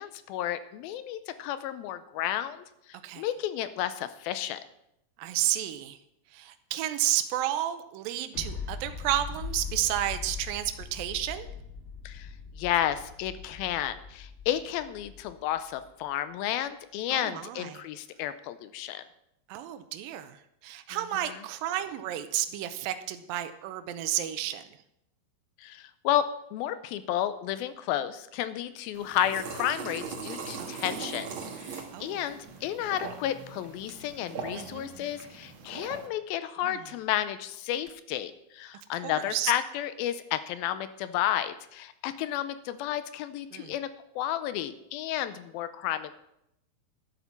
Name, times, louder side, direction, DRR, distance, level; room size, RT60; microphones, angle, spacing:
voice 1, 0.0-4.6 12.1-12.3 12.6-19.0 25.6-26.2 26.5-31.3 31.6-43.9 44.2-46.1, left 11 dB, 90° left, 12 dB, 2.5 m, -32 dB
voice 2, 5.2-6.0 6.3-11.5 17.1-17.8 19.5-24.6 30.6-30.8 31.9-32.2 34.5-34.9 36.6-36.8 38.9-39.5 43.5-43.7, right 12 dB, 80° right, 9 dB, 2.4 m, -32 dB
sound 1, 8.3-15.9, left 5 dB, 70° left, 0.6 m, -41 dB
sound 2, 28.9-36.1, right 5 dB, 60° right, 1.3 m, -40 dB
11.0 x 8.1 x 5.9 m, 0.80 s
omnidirectional pair, 4.3 m